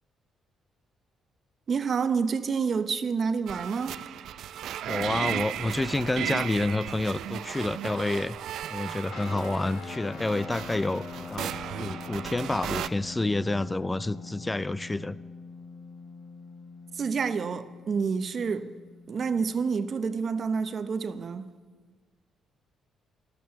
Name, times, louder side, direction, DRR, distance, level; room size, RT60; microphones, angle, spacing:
voice 1, 1.7-4.0 16.9-18.7 19.1-21.5, right 5 dB, 50° right, 0.8 m, -28 dB
sound 1, 3.5-12.9, right 10 dB, 75° right, 0.4 m, -35 dB
voice 2, 4.9-8.4 8.7-11.5 11.8-15.2, left 2 dB, 15° left, 0.4 m, -29 dB
sound 2, 9.1-19.8, left 5 dB, 75° left, 1.3 m, -43 dB
14.0 x 12.0 x 7.1 m
cardioid pair, 90°, 0 cm